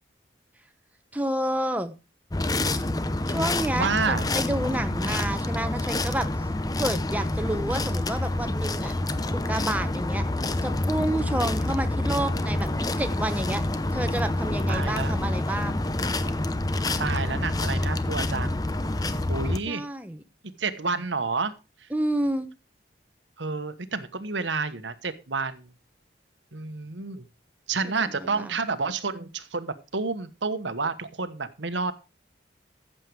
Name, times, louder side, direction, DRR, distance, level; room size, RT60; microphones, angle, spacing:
voice 1, 1.1-1.9 3.3-6.5 6.8-8.9 9.3-10.2 10.6-13.6 13.9-15.8 19.7-20.2 21.9-22.5 28.0-28.1 28.4-28.5, right 1 dB, 10° right, 8 dB, 1.0 m, -29 dB
sound 1, 2.3-19.6, left 2 dB, 20° left, 0.8 m, -27 dB
voice 2, 3.8-4.2 14.7-15.2 17.0-18.6 19.3-19.8 20.6-21.5 21.8-21.9 23.4-25.7 26.5-27.3 27.7-31.9, right 4 dB, 85° right, 11 dB, 1.3 m, -29 dB
14.5 x 7.7 x 4.7 m, 0.30 s
head